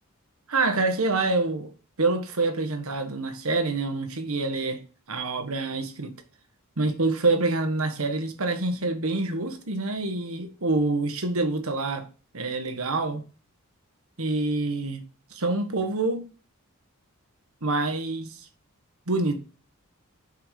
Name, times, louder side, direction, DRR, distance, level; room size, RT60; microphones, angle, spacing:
voice 1, 0.5-1.7 2.0-4.8 5.1-6.1 6.8-12.1 12.3-13.2 14.2-15.0 15.3-16.3 17.6-18.4 19.1-19.4, right 3 dB, 70° right, 1.4 m, -26 dB
6.5 x 5.5 x 5.1 m
head